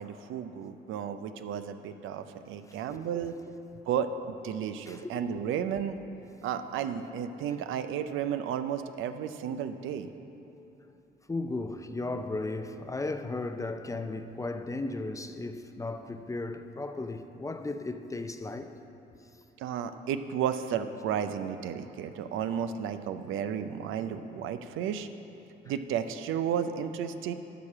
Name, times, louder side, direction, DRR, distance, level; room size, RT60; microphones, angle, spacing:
voice 1, 0.0-3.3 3.9-6.0 6.4-10.1 19.6-25.1 25.7-27.3, right 8 dB, 85° right, 0.5 m, -33 dB
voice 2, 11.3-18.8, left 2 dB, 15° left, 0.5 m, -35 dB
11.5 x 5.0 x 7.2 m
cardioid pair, 90°, 20 cm